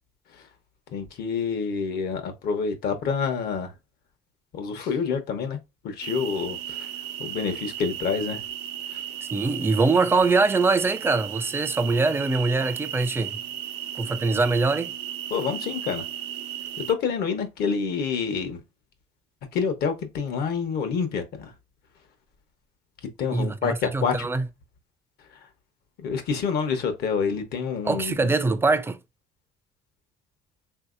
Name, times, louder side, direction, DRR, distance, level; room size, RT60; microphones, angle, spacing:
voice 1, 0.9-3.7 4.5-6.9 7.2-8.4 8.9-9.0 15.3-16.1 16.8-18.6 19.5-21.5 23.2-24.3 26.0-28.3, left 6 dB, 70° left, 0.9 m, -28 dB
sound 1, 6.0-16.9, right 11 dB, 90° right, 0.6 m, -35 dB
voice 2, 9.3-13.4 14.0-14.9 23.3-24.4 27.8-29.0, right 3 dB, 15° right, 0.4 m, -23 dB
3.6 x 2.7 x 2.4 m
cardioid pair, 110°, 17 cm